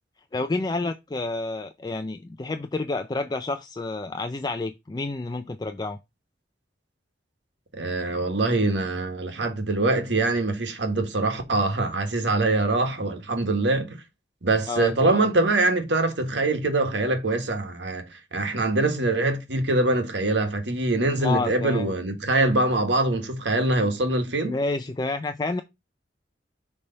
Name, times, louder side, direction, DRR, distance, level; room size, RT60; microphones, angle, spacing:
voice 1, 0.3-6.0 14.7-15.3 21.2-21.9 24.4-25.6, left 3 dB, 25° left, 0.4 m, -29 dB
voice 2, 7.7-14.0 14.4-24.6, right 2 dB, 80° right, 1.6 m, -24 dB
6.6 x 3.4 x 5.6 m
head